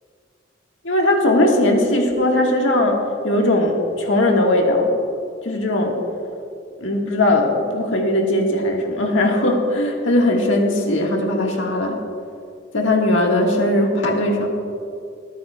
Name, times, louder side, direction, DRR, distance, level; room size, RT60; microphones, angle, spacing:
voice 1, 0.8-4.9 5.4-6.0 6.8-11.9 12.7-14.5, left 1 dB, 85° left, 1 dB, 1.6 m, -19 dB
24.5 x 9.2 x 2.3 m, 2.5 s
head